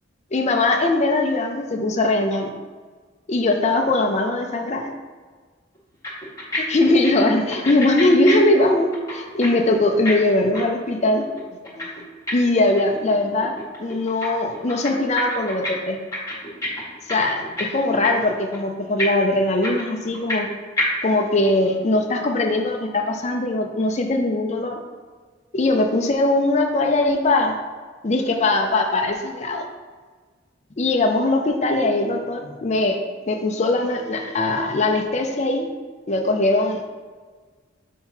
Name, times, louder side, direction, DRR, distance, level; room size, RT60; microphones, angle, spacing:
voice 1, 0.3-2.5 3.3-4.9 6.7-11.2 11.7-11.9 12.3-13.5 13.8-16.0 17.1-20.5 21.0-24.8 25.5-27.6 28.0-29.6 30.8-33.0 33.3-35.7 36.1-36.8, left 2 dB, 35° left, 2 dB, 0.6 m, -20 dB
sound 1, 5.8-5.9 6.0-6.6 6.9-9.5 9.7-13.1 13.4-14.3 14.5-15.7 16.0-17.8 18.0-18.2 18.5-18.6 19.0-20.5 20.8-20.9, left 1 dB, 20° left, 1.5 m, -28 dB
5.7 x 4.6 x 4.5 m, 1.5 s
head